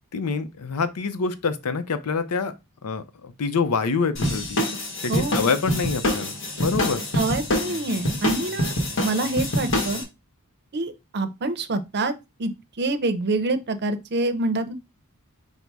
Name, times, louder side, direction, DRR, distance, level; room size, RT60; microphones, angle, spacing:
voice 1, 0.1-2.5 2.8-4.6 5.0-7.0, left 4 dB, 85° left, 0.6 m, -26 dB
sound 1, 4.2-10.0, left 1 dB, 60° left, 1.3 m, -26 dB
voice 2, 5.1-5.4 7.1-8.7 9.0-10.0 10.7-12.1 12.4-12.5 12.8-14.7, right 2 dB, 50° right, 0.6 m, -26 dB
5.3 x 2.1 x 4.6 m
head